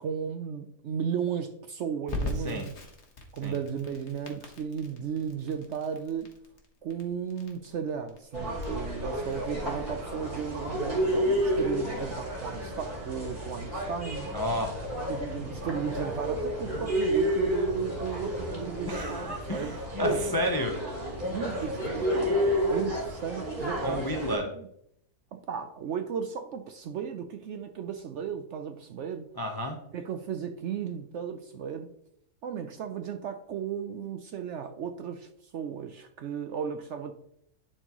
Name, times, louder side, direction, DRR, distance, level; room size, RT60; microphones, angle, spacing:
voice 1, 0.0-2.7 3.3-6.4 6.8-14.3 15.1-20.2 21.2-24.7 25.3-29.3 29.9-31.9 32.4-37.1, right 7 dB, 65° right, 7 dB, 0.7 m, -35 dB
Crackle, 2.1-12.8, left 2 dB, 50° left, 1.3 m, -42 dB
sound 1, 8.3-24.4, equal, 30° right, 2.7 m, -31 dB
voice 2, 14.3-14.8 18.9-20.8 23.8-24.5 29.4-29.8, left 1 dB, 35° left, 3 dB, 0.3 m, -31 dB
10.5 x 4.4 x 3.0 m, 0.73 s
omnidirectional pair, 1.6 m